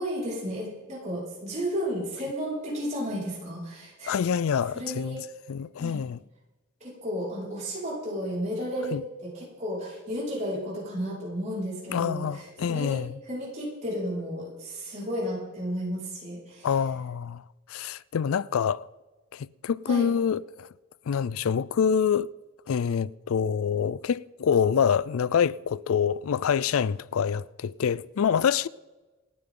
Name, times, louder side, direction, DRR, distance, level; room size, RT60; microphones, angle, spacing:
voice 1, 0.0-4.2 4.7-5.2 5.8-6.0 6.8-16.7 19.8-20.1, equal, 30° right, 5.3 m, -33 dB
voice 2, 4.1-6.2 8.9-9.0 11.9-13.2 16.6-17.4 17.7-18.9 19.3-20.7 21.1-22.3 22.7-28.7, left 7 dB, 70° left, 0.4 m, -26 dB
27.0 x 9.5 x 3.8 m
head